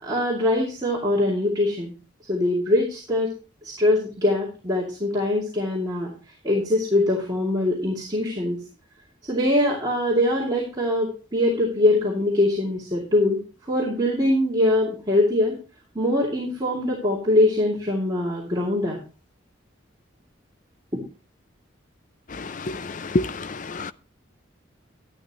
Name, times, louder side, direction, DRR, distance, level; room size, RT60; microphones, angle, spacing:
voice 1, 0.0-1.9 2.3-3.3 3.6-6.1 6.4-8.6 9.2-15.6 15.9-19.0 20.9-21.0, left 1 dB, 20° right, 2.5 m, -23 dB
voice 2, 22.3-23.9, left 2 dB, 40° left, 0.5 m, -28 dB
11.5 x 11.5 x 3.0 m
head